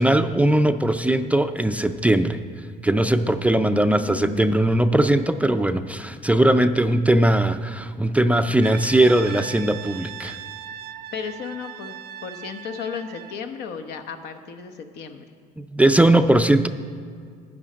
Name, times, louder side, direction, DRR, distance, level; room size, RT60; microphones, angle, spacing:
voice 1, 0.0-2.4 2.8-10.4 15.6-16.7, right 1 dB, 10° right, 9 dB, 0.3 m, -19 dB
voice 2, 3.6-4.6 11.1-11.9 12.2-15.2, left 6 dB, 75° left, 7 dB, 0.9 m, -34 dB
Brass instrument, 8.6-13.4, right 10 dB, 70° right, 0.6 m, -38 dB
9.8 x 9.7 x 5.1 m, 2.2 s
cardioid pair, 110°, 17 cm